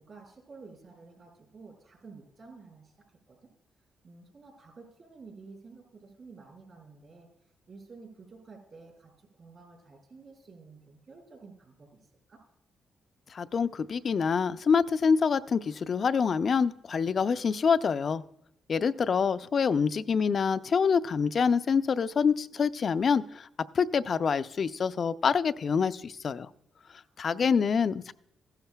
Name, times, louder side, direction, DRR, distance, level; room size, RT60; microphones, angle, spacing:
voice 1, 0.0-3.5 4.0-7.3 7.7-12.4 27.0-27.7, right 4 dB, 55° right, 0 dB, 4.8 m, -51 dB
voice 2, 13.3-18.2 18.7-23.5 23.7-26.5 27.2-28.1, left 6 dB, 55° left, 14 dB, 0.4 m, -26 dB
15.5 x 11.5 x 2.3 m, 0.79 s
supercardioid pair, 60°, 0 cm